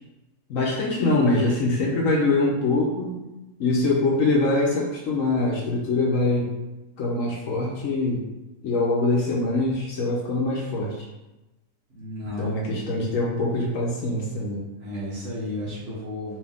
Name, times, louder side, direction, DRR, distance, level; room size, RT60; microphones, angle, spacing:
voice 1, 0.5-3.1 3.6-6.5 7.0-8.2 8.6-11.1 12.4-14.6, left 2 dB, 65° left, -2 dB, 1.0 m, -23 dB
voice 2, 11.9-13.0 14.7-16.4, left 1 dB, 50° right, -7 dB, 1.7 m, -33 dB
4.1 x 2.7 x 3.5 m, 1.0 s
omnidirectional pair, 1.6 m